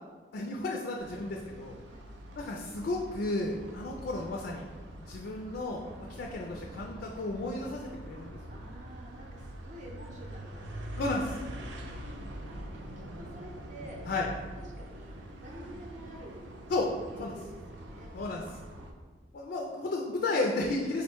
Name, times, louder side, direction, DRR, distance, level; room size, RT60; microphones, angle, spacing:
voice 1, 0.3-1.7 2.4-4.7 5.0-5.8 6.1-8.4 11.0-11.4 14.1-14.3 16.7-16.9 17.2-17.4 18.1-18.4 19.3-21.0, left 2 dB, 60° left, 0 dB, 0.3 m, -33 dB
sound 1, 1.0-18.9, right 1 dB, 90° right, 0.4 m, -44 dB
voice 2, 6.0-6.7 8.5-10.6 11.3-11.7 12.5-12.9 13.2-14.0 14.5-16.5 17.1-18.1 19.4-20.0, right 1 dB, 45° right, 0 dB, 0.6 m, -50 dB
3.9 x 2.1 x 4.4 m, 1.5 s
head